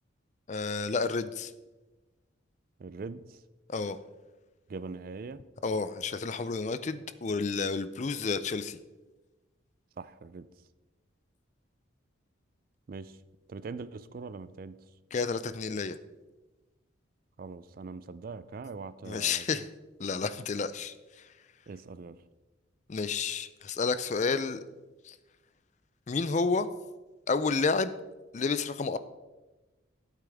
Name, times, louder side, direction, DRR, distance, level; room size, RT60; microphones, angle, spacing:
voice 1, 0.5-1.5 3.7-4.0 5.6-8.8 15.1-16.0 19.1-19.6 20.0-20.9 22.9-24.6 25.0-25.2 26.1-26.7 27.3-27.9 28.3-29.0, left 4 dB, 35° left, 13 dB, 0.4 m, -30 dB
voice 2, 2.8-3.4 4.7-5.4 10.0-10.5 12.9-13.2 13.5-14.8 17.4-19.7 21.7-22.2, right 4 dB, 45° right, 15 dB, 0.3 m, -42 dB
12.0 x 8.2 x 3.5 m, 1.1 s
head